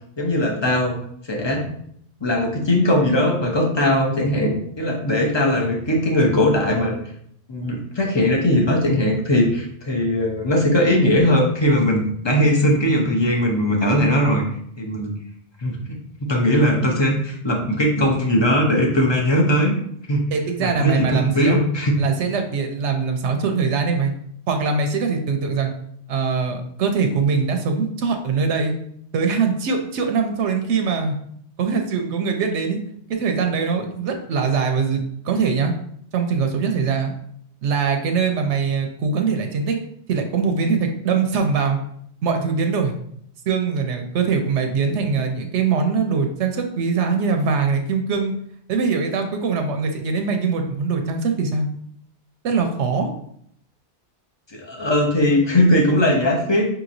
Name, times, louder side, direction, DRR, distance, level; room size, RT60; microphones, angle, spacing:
voice 1, 0.2-0.9 1.3-1.8 2.2-7.0 7.5-14.4 14.8-15.1 15.6-16.0 16.3-19.7 20.1-20.3 20.6-22.0 54.5-56.7, left 1 dB, 30° left, 0 dB, 0.6 m, -19 dB
voice 2, 20.3-21.6 22.0-24.1 24.5-25.7 26.1-28.7 29.1-31.1 31.6-32.8 33.1-35.7 36.1-37.1 37.6-39.8 40.1-41.8 42.2-42.9 43.5-48.3 48.7-51.7 52.4-53.1, right 5 dB, 85° right, 5 dB, 0.9 m, -22 dB
5.3 x 2.9 x 2.6 m, 0.67 s
omnidirectional pair, 1.2 m